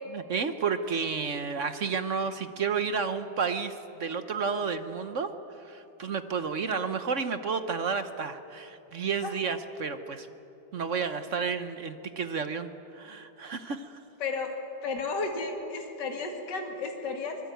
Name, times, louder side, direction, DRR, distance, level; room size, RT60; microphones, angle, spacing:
voice 1, 0.1-5.3 5.6-10.3 10.7-14.0, right 5 dB, 50° right, 9 dB, 1.0 m, -31 dB
voice 2, 14.2-14.6 14.8-17.4, left 3 dB, 55° left, 2 dB, 2.8 m, -33 dB
24.5 x 20.5 x 9.2 m, 2.9 s
omnidirectional pair, 2.2 m